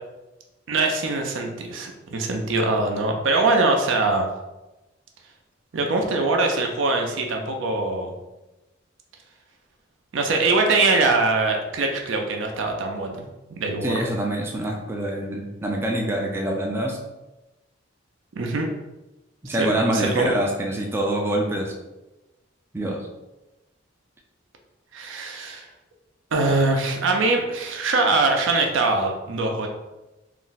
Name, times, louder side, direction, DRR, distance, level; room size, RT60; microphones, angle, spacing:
voice 1, 0.7-4.3 5.7-8.1 10.1-13.2 13.5-14.0 18.3-18.7 19.6-19.7 19.9-20.3 24.9-25.7 26.3-29.7, right 3 dB, 75° right, 3 dB, 0.5 m, -22 dB
voice 2, 13.8-17.0 19.4-21.7 22.7-23.1, right 1 dB, 10° right, -1 dB, 0.3 m, -25 dB
2.5 x 2.1 x 3.9 m, 1.0 s
head